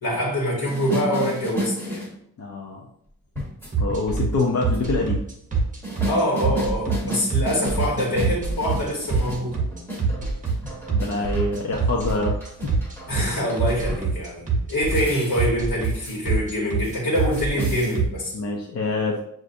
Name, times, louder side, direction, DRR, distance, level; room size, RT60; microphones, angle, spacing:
voice 1, 0.0-2.0 6.1-9.6 13.1-18.4, equal, 80° left, -4 dB, 1.2 m, -25 dB
sound 1, 0.6-2.1 3.4-5.2 5.8-14.2 14.8-15.5 15.8-16.2 16.5-16.6 16.8-18.0, equal, 5° left, 1.0 m, -33 dB
voice 2, 2.4-2.8 3.8-5.2 10.1-10.3 10.9-12.3 12.6-12.7 18.3-19.2, left 3 dB, 45° left, -1 dB, 0.5 m, -25 dB
sound 2, 3.7-18.0, right 4 dB, 20° right, 0.8 m, -24 dB
6.5 x 2.5 x 2.5 m, 0.71 s
wide cardioid pair, 175°, 35 cm